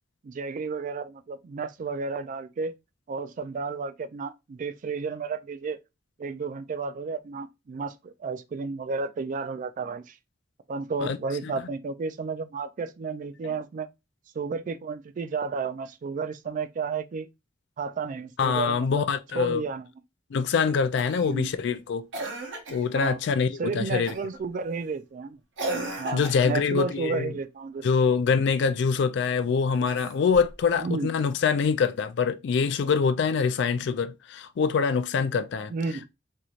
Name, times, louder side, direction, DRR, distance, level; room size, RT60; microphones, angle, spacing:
voice 1, 0.2-2.7 3.1-5.8 6.2-10.2 10.7-13.9 14.4-17.3 17.8-19.1 19.3-19.9 21.2-21.5 22.9-23.2 23.6-25.4 26.0-27.9 30.8-31.1 35.7-36.1, right 4 dB, 45° right, 0.3 m, -32 dB
voice 2, 18.4-19.6 20.3-22.1 22.7-24.1 26.1-27.3 27.8-35.7, left 5 dB, 65° left, 0.3 m, -25 dB
Cough, 21.0-21.3 22.1-22.9 24.1-24.4 25.6-26.6 29.7-30.5 32.0-32.1, right 2 dB, 80° right, 0.8 m, -35 dB
3.0 x 2.7 x 2.4 m
head